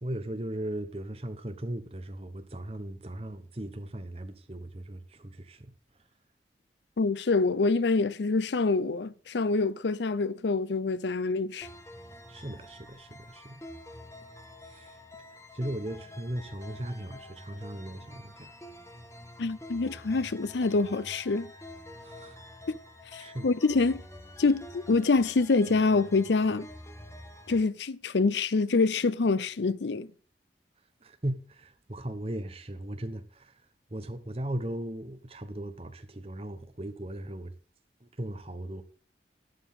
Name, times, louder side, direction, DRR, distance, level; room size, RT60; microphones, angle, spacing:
voice 1, 0.0-5.7 12.3-13.6 14.6-15.0 15.5-18.5 22.0-22.4 23.2-23.5 31.0-33.6 33.9-37.5 38.0-38.8, right 1 dB, 35° right, 1.1 m, -37 dB
voice 2, 7.0-11.7 19.4-21.5 22.7-22.8 23.1-24.0 24.4-26.7 27.5-30.1, left 3 dB, 80° left, 0.6 m, -26 dB
sound 1, 11.6-27.6, left 1 dB, 15° left, 1.4 m, -48 dB
11.5 x 11.0 x 3.7 m
head